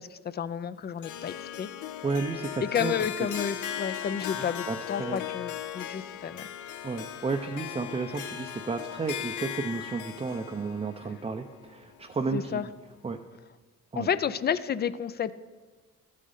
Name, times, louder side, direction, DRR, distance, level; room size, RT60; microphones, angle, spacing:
voice 1, 0.0-1.7 2.6-6.5 12.3-12.7 14.0-15.3, left 8 dB, 35° left, 15 dB, 0.5 m, -31 dB
Harp, 1.0-12.3, left 10 dB, 80° left, 0.7 m, -38 dB
voice 2, 2.0-2.9 4.4-5.2 6.8-12.7 13.0-13.2 13.9-14.1, right 4 dB, 20° right, 4 dB, 0.6 m, -32 dB
13.5 x 6.5 x 4.0 m, 1.4 s
cardioid pair, 90°, 30 cm